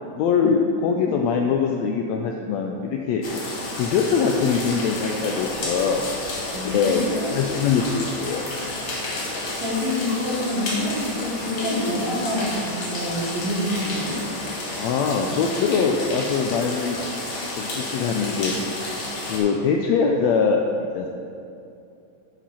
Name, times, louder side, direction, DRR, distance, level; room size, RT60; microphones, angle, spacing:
voice 1, 0.2-3.2 3.8-6.0 6.7-8.4 11.1-11.2 14.8-17.0 17.6-18.5 19.3-21.1, left 5 dB, 85° left, 2 dB, 1.5 m, -22 dB
sound 1, 3.2-19.4, left 2 dB, 50° left, 1.7 m, -31 dB
voice 2, 6.5-7.4 9.6-14.2, left 1 dB, 70° right, -4 dB, 2.7 m, -27 dB
8.7 x 5.0 x 5.5 m, 2.6 s
omnidirectional pair, 3.5 m